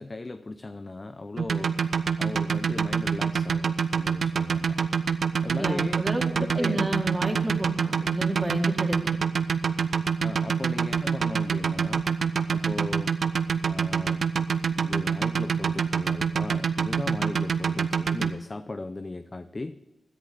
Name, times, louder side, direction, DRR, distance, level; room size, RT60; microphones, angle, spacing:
voice 1, 0.0-1.7 2.2-4.8 5.4-6.0 6.4-6.8 8.0-8.1 10.2-12.1 12.5-13.1 13.7-14.2 14.8-19.8, left 2 dB, 35° left, 10 dB, 0.6 m, -37 dB
sound 1, 1.4-18.3, right 6 dB, 70° right, 0.7 m, -25 dB
voice 2, 5.5-9.0, right 1 dB, 20° right, 1 dB, 2.6 m, -30 dB
17.0 x 10.5 x 4.0 m, 1.1 s
cardioid pair, 50°, 0 cm